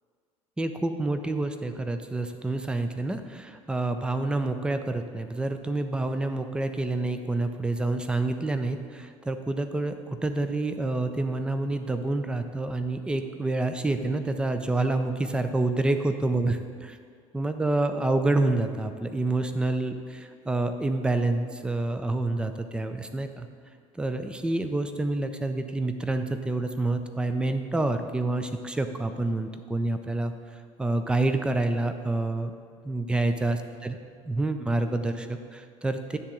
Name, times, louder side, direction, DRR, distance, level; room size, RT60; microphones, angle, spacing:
voice 1, 0.6-17.0 17.3-23.5 23.9-30.3 30.8-32.5 32.8-33.9 34.3-36.2, right 2 dB, 5° right, 8 dB, 0.5 m, -28 dB
9.8 x 3.6 x 6.1 m, 2.2 s
figure-of-eight pair, 65°, 17 cm